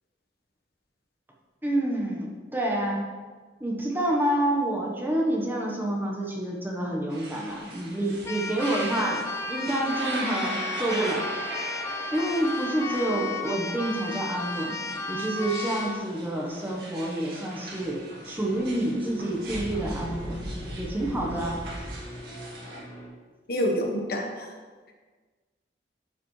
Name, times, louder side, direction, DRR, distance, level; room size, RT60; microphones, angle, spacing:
voice 1, 1.6-3.0 3.6-9.2 9.5-11.3 12.1-20.4 20.8-21.6, right 1 dB, 10° right, -2 dB, 1.0 m, -28 dB
sound 1, 7.1-22.8, right 1 dB, 65° right, 1.9 m, -40 dB
Keyboard (musical), 8.2-16.0, left 3 dB, 15° left, 0.6 m, -34 dB
sound 2, 17.7-23.1, equal, 40° left, 1.6 m, -38 dB
voice 2, 23.5-24.5, equal, 60° left, 1 dB, 1.1 m, -27 dB
12.0 x 5.0 x 3.1 m, 1.4 s
head